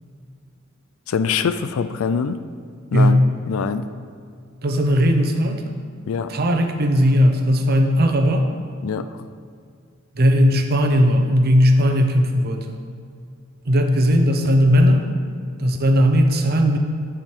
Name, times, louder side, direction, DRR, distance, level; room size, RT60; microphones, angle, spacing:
voice 1, 1.1-2.4 2.9-3.8 6.1-6.3 8.8-9.1, left 6 dB, 90° left, 12 dB, 0.4 m, -24 dB
voice 2, 4.6-5.6 6.3-8.5 10.2-12.8 13.7-15.1 15.6-16.8, equal, 50° right, 5 dB, 0.7 m, -17 dB
8.7 x 4.9 x 4.5 m, 2.2 s
head